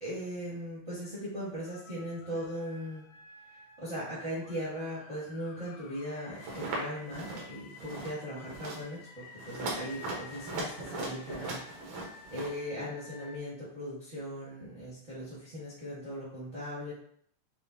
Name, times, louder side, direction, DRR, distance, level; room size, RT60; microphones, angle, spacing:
voice 1, 0.0-3.0 3.8-11.6 12.3-16.9, equal, 45° right, -9 dB, 0.9 m, -39 dB
sound 1, 1.7-13.4, left 5 dB, 80° left, 1.8 m, -52 dB
sound 2, 6.4-6.8 7.1-7.5 7.7-8.1 8.4-8.8 9.4-12.5, right 2 dB, 70° right, 2.2 m, -38 dB
6.9 x 2.4 x 2.6 m, 0.64 s
omnidirectional pair, 3.8 m